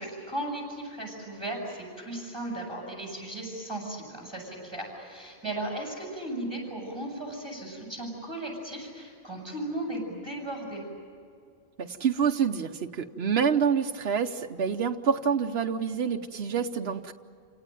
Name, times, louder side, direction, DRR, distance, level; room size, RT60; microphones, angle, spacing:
voice 1, 0.0-10.9, right 1 dB, 25° right, -1 dB, 7.7 m, -36 dB
voice 2, 11.8-17.1, right 6 dB, 85° right, 4 dB, 1.1 m, -27 dB
28.5 x 18.0 x 9.3 m, 2.3 s
omnidirectional pair, 1.0 m